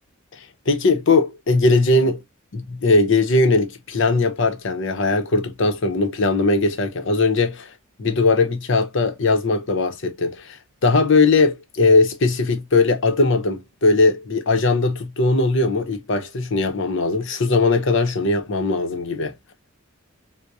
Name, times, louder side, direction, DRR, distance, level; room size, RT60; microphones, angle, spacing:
voice 1, 0.4-2.2 2.5-7.7 8.0-19.3, left 3 dB, 60° left, 0.7 m, -19 dB
4.6 x 2.1 x 2.5 m
head